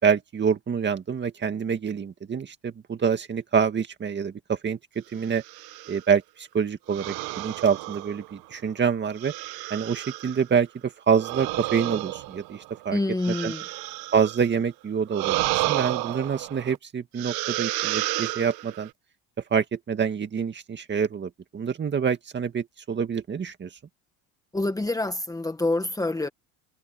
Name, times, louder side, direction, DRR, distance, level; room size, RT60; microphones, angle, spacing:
voice 1, 0.0-5.4 5.9-9.3 9.7-13.0 13.3-13.5 14.1-18.9 19.5-23.7, right 6 dB, 25° right, 2.1 m, -26 dB
sound 1, 5.3-6.0 6.9-8.5 9.2-10.4 11.1-14.5 15.1-16.8 17.2-18.9, right 19 dB, 70° right, 1.0 m, -31 dB
voice 2, 12.9-13.7 24.5-26.3, left 2 dB, 10° left, 1.7 m, -27 dB
cardioid pair, 130°, 39 cm